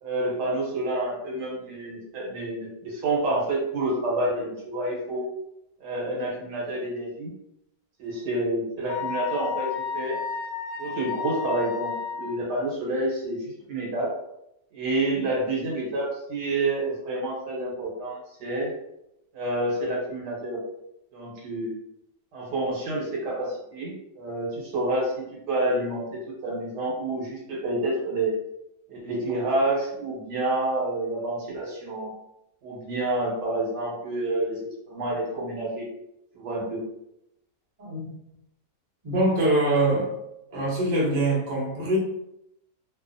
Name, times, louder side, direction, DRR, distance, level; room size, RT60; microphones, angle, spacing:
voice 1, 0.0-5.3 5.8-7.3 8.0-10.2 10.8-13.4 13.7-14.1 14.7-18.7 19.3-20.6 21.1-21.7 22.3-25.1 25.5-28.3 28.9-32.1 32.6-34.6 34.9-35.9 36.3-36.8, right 2 dB, 75° right, -3 dB, 1.4 m, -28 dB
Wind instrument woodwind instrument, 8.9-12.4, left 7 dB, 85° left, 1.2 m, -32 dB
voice 2, 39.0-40.1 40.5-42.0, right 2 dB, 35° right, -5 dB, 0.8 m, -23 dB
2.7 x 2.4 x 2.5 m, 0.82 s
omnidirectional pair, 1.8 m